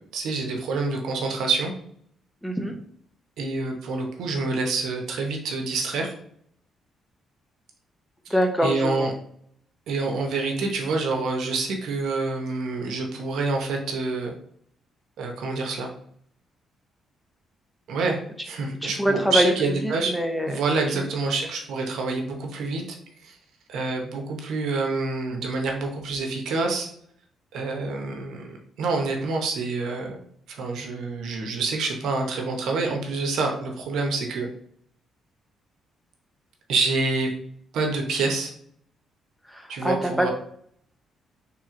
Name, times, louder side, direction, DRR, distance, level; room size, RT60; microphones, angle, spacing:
voice 1, 0.0-1.7 3.4-6.1 8.6-9.1 9.9-14.3 15.2-15.9 17.9-20.1 20.5-23.3 23.7-26.9 27.5-30.2 30.5-34.5 36.7-37.3 37.7-38.5 39.7-40.3, right 3 dB, 75° right, 2 dB, 0.9 m, -27 dB
voice 2, 2.4-2.7 8.3-9.1 18.8-19.5 19.8-20.6 39.5-40.3, equal, 5° left, 4 dB, 0.7 m, -24 dB
3.5 x 3.0 x 3.7 m, 0.66 s
cardioid pair, 90°, 0 cm